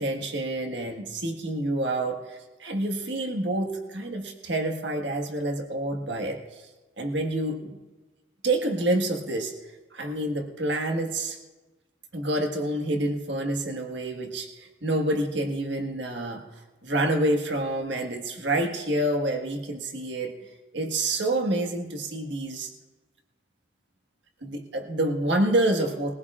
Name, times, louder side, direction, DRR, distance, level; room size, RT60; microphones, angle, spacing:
voice 1, 0.0-6.6 7.0-7.8 8.4-11.4 12.1-16.4 16.8-20.3 20.7-22.7 24.4-26.1, right 1 dB, 70° right, 4 dB, 1.6 m, -28 dB
21.5 x 16.0 x 2.4 m, 1.2 s
head